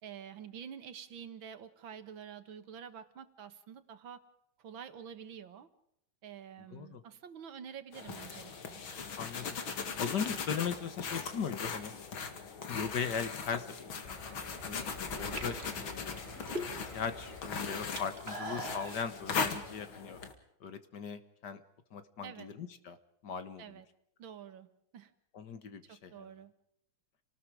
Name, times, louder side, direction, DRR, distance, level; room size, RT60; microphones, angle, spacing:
voice 1, 0.0-4.2 4.6-5.7 6.2-8.8 22.2-22.5 23.6-23.9 24.2-24.7 24.9-25.1 25.8-26.5, right 8 dB, 75° right, 11 dB, 2.2 m, -48 dB
sound 1, 7.9-20.3, left 5 dB, 85° left, 2.8 m, -39 dB
voice 2, 9.2-9.6 10.0-11.9 12.7-14.2 14.6-14.8 15.2-16.2 16.9-20.2 20.6-21.6 21.9-23.0 23.2-23.6 25.3-26.3, left 6 dB, 60° left, 12 dB, 1.8 m, -38 dB
sound 2, 14.0-17.9 18.7-18.9 19.3-19.4, left 1 dB, 40° left, 8.2 m, -49 dB
sound 3, 14.2-14.6 15.2-17.0 17.3-19.0, right 1 dB, 30° right, 2.6 m, -41 dB
29.0 x 19.5 x 4.9 m, 0.72 s
omnidirectional pair, 2.2 m